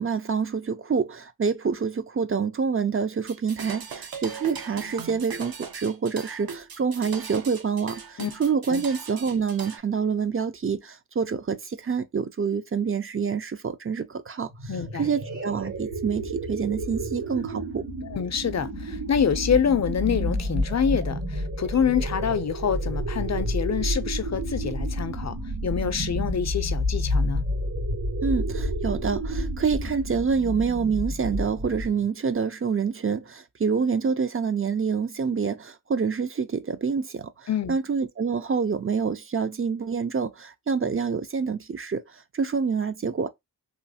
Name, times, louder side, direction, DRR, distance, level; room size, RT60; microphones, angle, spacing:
voice 1, 0.0-14.5 14.9-17.8 28.2-43.3, right 5 dB, 35° right, 0.4 m, -27 dB
sound 1, 3.2-9.8, right 6 dB, 65° right, 0.7 m, -38 dB
sound 2, 14.5-32.1, equal, 90° right, 1.8 m, -30 dB
voice 2, 14.7-15.1 18.0-25.4 25.6-27.4 37.5-37.8, left 7 dB, 45° left, 0.5 m, -26 dB
3.1 x 2.4 x 2.7 m
cardioid pair, 60°, 39 cm